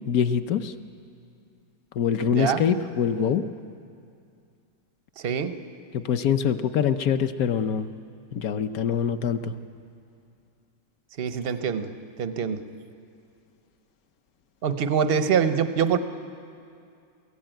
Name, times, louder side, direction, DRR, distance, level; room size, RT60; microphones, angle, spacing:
voice 1, 0.1-0.7 1.9-3.4 5.9-7.9 8.3-9.5, left 8 dB, 65° left, 10 dB, 1.0 m, -24 dB
voice 2, 2.3-2.7 5.2-5.6 11.2-11.9 12.2-12.6 14.6-16.0, right 7 dB, 65° right, 10 dB, 0.5 m, -24 dB
22.5 x 15.5 x 9.0 m, 2.4 s
omnidirectional pair, 2.1 m